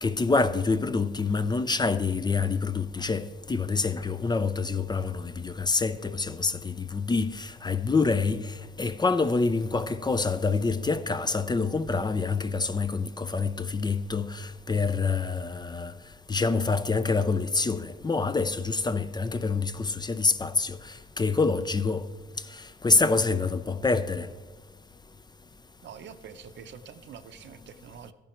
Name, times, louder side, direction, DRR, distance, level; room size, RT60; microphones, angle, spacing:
voice 1, 0.0-15.9 16.3-22.0 22.6-24.3, left 4 dB, 20° left, 0.5 m, -26 dB
voice 2, 25.8-28.1, right 7 dB, 65° right, 0.8 m, -45 dB
13.5 x 10.5 x 4.4 m
cardioid pair, 90°, 20 cm